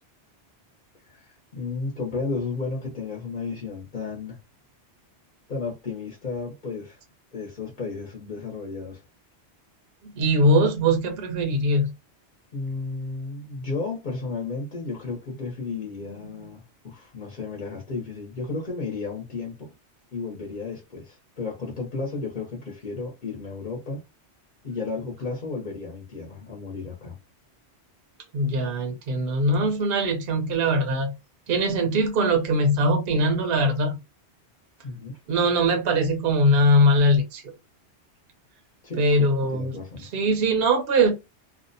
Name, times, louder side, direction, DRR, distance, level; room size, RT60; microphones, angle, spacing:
voice 1, 1.1-4.4 5.5-7.0 7.3-9.0 12.5-19.7 20.1-24.0 24.6-27.2 34.8-35.2 38.8-39.0 39.5-40.1, left 4 dB, 45° left, 0.9 m, -33 dB
voice 2, 10.1-11.9 28.3-31.1 31.5-34.0 35.3-37.4 39.0-39.7 40.0-41.1, right 1 dB, 65° right, 0.7 m, -21 dB
2.6 x 2.1 x 2.6 m
omnidirectional pair, 1.2 m